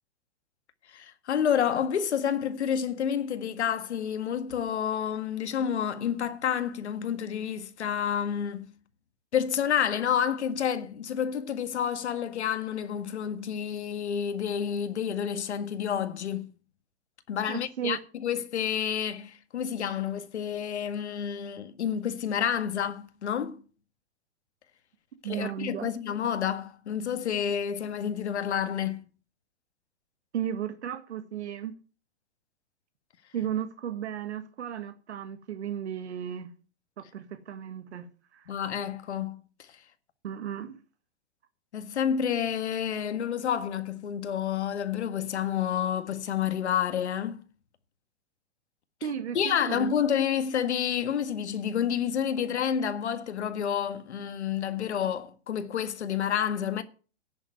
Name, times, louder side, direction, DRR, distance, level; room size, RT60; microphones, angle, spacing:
voice 1, 0.9-8.7 9.3-16.5 17.3-23.6 25.2-29.0 38.5-39.8 41.7-47.4 49.4-56.8, left 8 dB, 90° left, 1.8 m, -29 dB
voice 2, 17.5-18.0 25.2-25.9 30.3-31.7 33.3-36.5 37.0-38.5 40.2-40.8 49.0-49.9, right 9 dB, 80° right, 1.7 m, -34 dB
11.0 x 7.2 x 9.3 m
hypercardioid pair, 155°, 33 cm